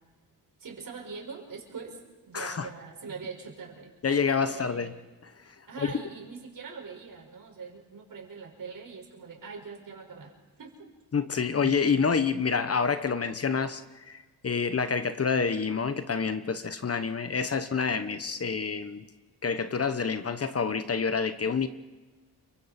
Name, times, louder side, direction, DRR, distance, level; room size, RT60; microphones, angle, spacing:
voice 1, 0.6-2.0 2.2-3.9 4.5-4.9 5.7-10.3 10.6-10.9 11.6-11.7, right 5 dB, 60° right, 2 dB, 5.4 m, -42 dB
voice 2, 2.3-2.7 4.0-4.9 5.8-5.9 11.1-14.2 14.4-19.0 19.4-21.7, left 5 dB, 40° left, 10 dB, 1.1 m, -28 dB
29.0 x 24.0 x 4.4 m, 1.2 s
wide cardioid pair, 120°, 38 cm